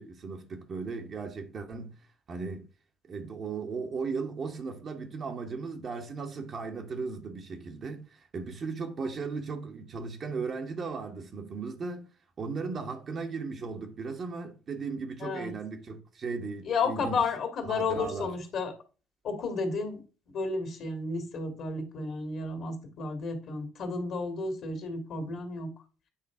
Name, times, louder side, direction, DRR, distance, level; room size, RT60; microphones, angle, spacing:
voice 1, 0.0-2.0 2.3-2.7 3.0-12.1 12.4-17.3 17.6-18.4, right 4 dB, 45° right, 1.3 m, -36 dB
voice 2, 15.2-15.5 16.6-18.7 19.2-20.0 20.3-25.7, left 4 dB, 55° left, 2.0 m, -32 dB
8.6 x 3.2 x 4.9 m
hypercardioid pair, 50°, 0 cm